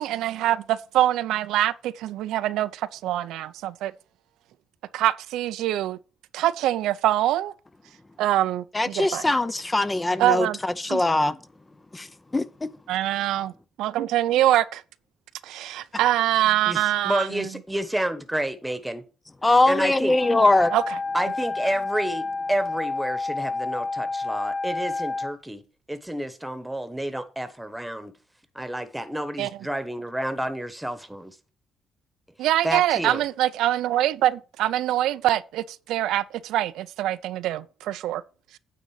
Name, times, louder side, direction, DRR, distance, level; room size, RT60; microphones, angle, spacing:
voice 1, 0.0-3.9 4.9-6.0 6.3-7.5 8.2-9.2 10.2-10.6 10.9-11.0 12.9-13.5 13.8-14.8 15.4-17.5 20.7-20.8 29.4-29.5 32.4-38.2, right 13 dB, 90° right, 0.4 m, -24 dB
voice 2, 8.7-11.4 11.9-12.1 12.3-12.7 19.4-20.7, left 2 dB, 20° left, 0.5 m, -21 dB
voice 3, 16.4-19.0 19.4-20.2 21.1-25.6 25.9-28.1 28.5-31.4 32.6-33.2, right 1 dB, 5° right, 1.3 m, -30 dB
Wind instrument woodwind instrument, 20.0-25.3, left 3 dB, 50° left, 2.8 m, -30 dB
9.2 x 3.9 x 7.0 m
cardioid pair, 90°, 0 cm